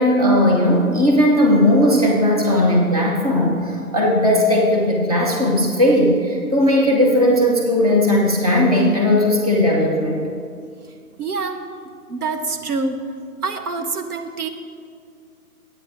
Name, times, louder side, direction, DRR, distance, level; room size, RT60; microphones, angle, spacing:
voice 1, 0.0-10.2, left 1 dB, 25° right, -2 dB, 0.8 m, -17 dB
voice 2, 11.2-11.7 12.1-13.0 13.4-14.5, right 4 dB, 75° right, 7 dB, 1.1 m, -25 dB
9.6 x 8.9 x 4.8 m, 2.2 s
hypercardioid pair, 175°, 45 cm